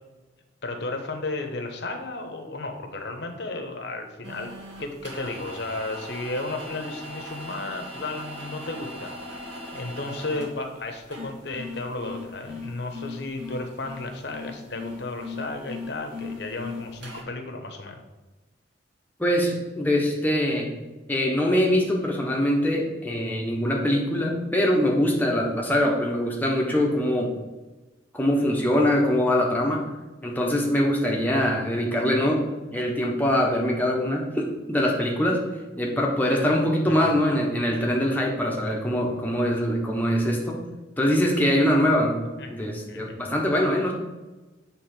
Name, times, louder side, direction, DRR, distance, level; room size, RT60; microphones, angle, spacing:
voice 1, 0.6-18.0 36.9-37.1 42.4-43.2, left 2 dB, 65° left, 5 dB, 1.0 m, -34 dB
sound 1, 4.2-17.2, left 2 dB, 75° right, 1.8 m, -39 dB
voice 2, 19.2-20.7 21.1-27.3 28.1-29.8 30.2-35.4 35.8-40.6 41.0-42.2 42.5-43.9, equal, 10° left, -1 dB, 1.1 m, -23 dB
7.5 x 3.8 x 6.1 m, 1.2 s
head